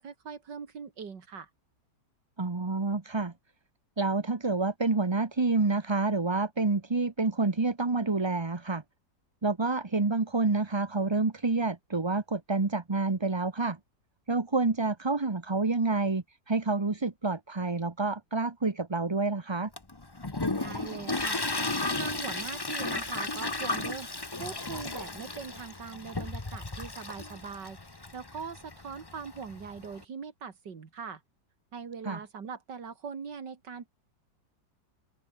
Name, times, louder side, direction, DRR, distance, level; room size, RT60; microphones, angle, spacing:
voice 1, 0.0-1.5 20.5-21.4 22.0-24.1 24.4-27.8 28.1-31.2 31.7-33.9, right 6 dB, 70° right, 2.8 m, -41 dB
voice 2, 2.4-3.3 4.0-8.8 9.4-13.8 14.3-19.7 32.0-32.2, right 3 dB, 20° right, 0.8 m, -28 dB
Toilet flush, 19.8-30.0, left 2 dB, 15° left, 1.1 m, -34 dB
open air
omnidirectional pair, 2.0 m